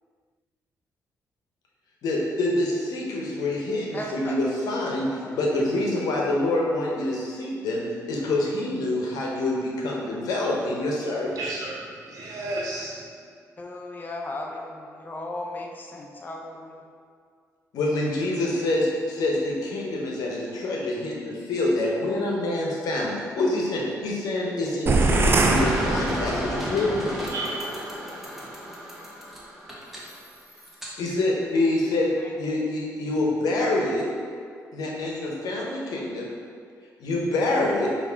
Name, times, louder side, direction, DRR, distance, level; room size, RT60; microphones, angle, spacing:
voice 1, 2.0-11.6 17.7-27.1 31.0-34.1 34.7-36.3 37.0-37.9, left 2 dB, 75° left, -2 dB, 0.7 m, -26 dB
voice 2, 3.9-4.4 5.2-5.6 13.6-16.8, left 1 dB, 30° left, 0 dB, 0.6 m, -36 dB
voice 3, 11.3-13.1 27.3-27.7, right 2 dB, 70° right, -4 dB, 1.0 m, -33 dB
sound 1, 24.9-26.7, right 2 dB, 35° right, 0.4 m, -22 dB
sound 2, 25.5-30.9, equal, 5° right, 0.9 m, -33 dB
4.7 x 2.5 x 3.4 m, 2.2 s
cardioid pair, 75°, 6 cm